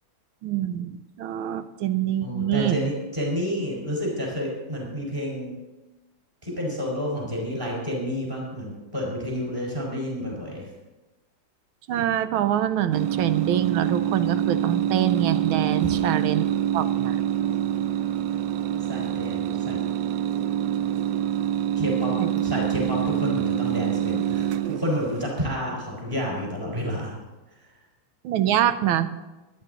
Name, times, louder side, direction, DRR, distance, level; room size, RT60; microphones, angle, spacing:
voice 1, 0.4-2.8 11.9-16.4 16.7-17.2 22.2-22.3 28.2-29.1, right 11 dB, 85° right, 12 dB, 1.5 m, -25 dB
voice 2, 2.2-5.6 6.4-10.7 15.8-16.0 18.9-19.8 21.8-22.1 22.4-27.1, equal, 25° right, -4 dB, 4.6 m, -30 dB
sound 1, 12.9-25.3, right 10 dB, 70° right, 1.1 m, -26 dB
24.0 x 9.3 x 3.9 m, 1.1 s
omnidirectional pair, 2.2 m